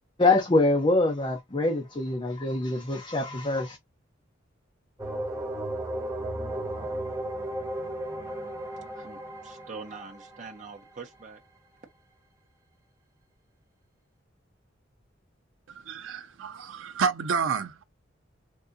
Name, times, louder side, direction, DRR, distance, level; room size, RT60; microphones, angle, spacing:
voice 1, 0.2-3.8, left 2 dB, 25° left, 0.7 m, -24 dB
sound 1, 5.0-10.7, right 1 dB, 15° right, 0.9 m, -34 dB
voice 2, 8.9-11.4, right 4 dB, 40° right, 0.7 m, -44 dB
voice 3, 15.7-17.8, right 6 dB, 85° right, 0.5 m, -30 dB
3.6 x 2.7 x 2.6 m
head